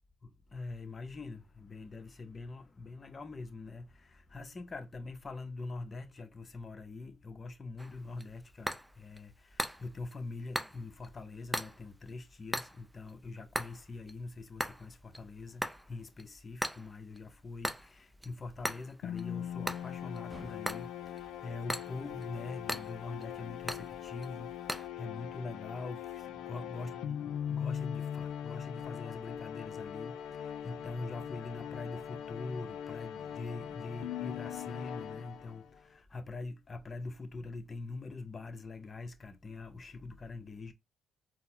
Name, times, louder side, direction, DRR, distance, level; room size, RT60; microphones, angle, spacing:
voice 1, 0.2-40.7, left 3 dB, 35° left, 0.7 m, -44 dB
sound 1, 7.8-24.9, equal, 5° right, 0.5 m, -41 dB
sound 2, 19.0-35.8, left 9 dB, 80° left, 0.3 m, -41 dB
4.0 x 2.1 x 2.8 m
supercardioid pair, 65°, 0 cm